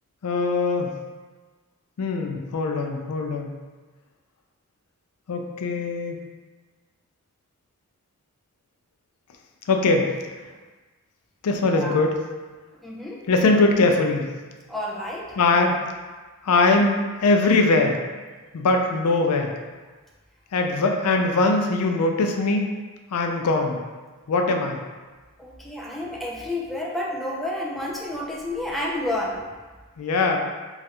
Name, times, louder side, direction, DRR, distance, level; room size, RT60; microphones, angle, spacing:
voice 1, 0.2-0.9 2.0-3.5 5.3-6.2 9.7-10.1 11.4-12.2 13.3-14.3 15.4-15.7 16.4-18.0 18.5-19.5 20.5-22.7 23.1-23.8 24.3-24.8 30.0-30.4, left 3 dB, 90° left, 3 dB, 0.4 m, -21 dB
voice 2, 12.8-13.2 14.7-15.4 25.4-29.4, left 1 dB, ahead, -3 dB, 0.3 m, -30 dB
3.1 x 2.4 x 2.8 m, 1.3 s
head